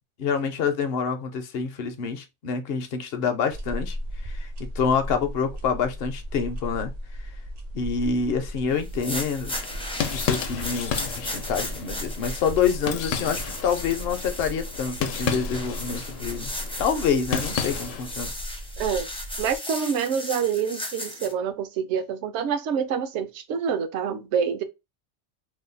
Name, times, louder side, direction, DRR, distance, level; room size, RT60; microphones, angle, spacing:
voice 1, 0.2-4.0 4.2-6.9 7.7-9.5 10.1-16.5 16.8-18.3, left 6 dB, 60° left, 0.7 m, -27 dB
sound 1, 3.5-19.6, equal, 50° right, 0.5 m, -37 dB
sound 2, 8.8-21.3, left 1 dB, 10° left, 0.4 m, -36 dB
sound 3, 9.5-18.2, left 7 dB, 85° left, 0.9 m, -33 dB
voice 2, 19.4-24.6, right 7 dB, 70° right, 0.8 m, -27 dB
2.7 x 2.2 x 3.7 m
omnidirectional pair, 1.3 m